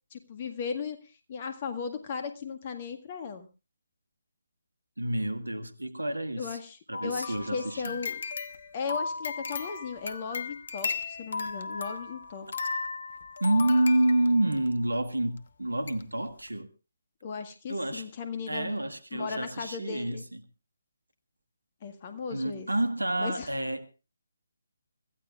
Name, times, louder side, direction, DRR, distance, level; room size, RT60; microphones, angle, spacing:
voice 1, 0.1-1.0 1.3-3.5 6.4-8.2 8.7-12.5 17.2-18.7 19.1-20.2 21.8-22.7 23.2-23.5, left 5 dB, 30° left, 1.8 m, -36 dB
voice 2, 5.0-6.6 6.9-8.0 13.4-16.7 17.7-18.1 18.5-20.4 22.3-23.9, right 1 dB, 80° right, 1.6 m, -28 dB
sound 1, 6.9-14.7 15.4-15.5 15.9-16.0 16.4-16.5, left 4 dB, 50° left, 1.1 m, -36 dB
25.0 x 15.0 x 2.5 m
figure-of-eight pair, 145°, 0 cm